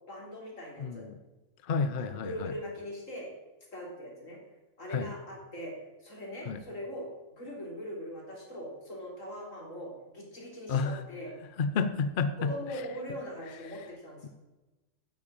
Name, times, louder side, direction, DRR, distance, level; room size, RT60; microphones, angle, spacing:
voice 1, 0.1-1.1 2.0-3.3 3.7-4.4 4.8-5.7 6.0-7.1 7.3-11.3 12.4-14.3, equal, 90° left, -1 dB, 3.8 m, -41 dB
voice 2, 0.8-1.1 1.6-2.5 4.9-5.1 6.5-6.6 10.7-11.0 11.6-13.2 13.5-13.9 14.2-14.3, left 5 dB, 50° left, 11 dB, 0.8 m, -31 dB
9.8 x 9.2 x 8.8 m, 1.1 s
omnidirectional pair, 1.3 m